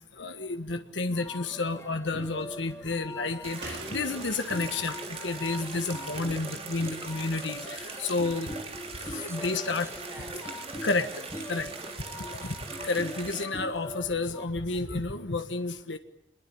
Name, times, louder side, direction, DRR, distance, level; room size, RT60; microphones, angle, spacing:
voice 1, 0.2-8.5 9.1-9.9 10.8-11.1 11.5-11.7 12.3-16.0, left 3 dB, 80° left, 7 dB, 1.5 m, -31 dB
sound 1, 1.1-14.5, left 1 dB, 15° left, 1.5 m, -42 dB
sound 2, 3.4-13.4, right 4 dB, 30° right, 3.8 m, -41 dB
Slam, 3.6-7.1 7.4-7.5, right 2 dB, 70° right, 5.8 m, -48 dB
voice 2, 9.2-12.6, equal, 15° right, 6 dB, 4.7 m, -51 dB
26.5 x 22.0 x 8.7 m, 0.78 s
head